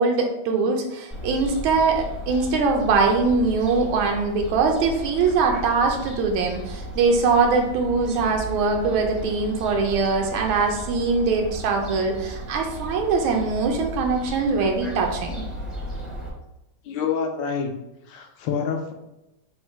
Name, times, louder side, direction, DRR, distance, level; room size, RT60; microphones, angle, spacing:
voice 1, 0.0-15.4, right 4 dB, 85° right, 2 dB, 1.4 m, -22 dB
Fowl, 1.1-16.3, equal, ahead, 0.3 m, -35 dB
voice 2, 16.8-17.7 18.1-18.9, left 6 dB, 75° left, 4 dB, 1.3 m, -27 dB
4.1 x 2.1 x 4.4 m, 0.92 s
omnidirectional pair, 2.2 m